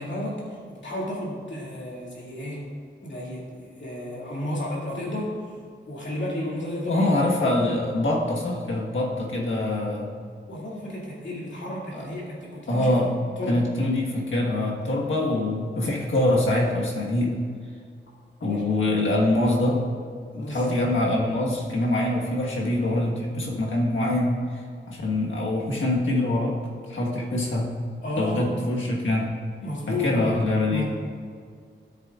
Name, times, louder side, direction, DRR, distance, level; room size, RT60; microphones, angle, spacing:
voice 1, 0.0-2.6 3.0-5.3 5.9-7.2 10.5-12.9 13.4-13.6 18.4-18.8 20.3-20.8 28.0-28.5 29.6-30.4 30.7-30.8, left 1 dB, 70° left, -5 dB, 2.3 m, -32 dB
voice 2, 6.9-10.1 11.9-12.1 12.7-13.1 13.5-17.4 18.4-19.8 20.3-24.6 24.9-26.6 26.9-27.7 28.2-29.3 29.9-30.8, left 1 dB, 90° left, -2 dB, 1.5 m, -24 dB
13.5 x 7.4 x 2.4 m, 2.1 s
wide cardioid pair, 140°, 20 cm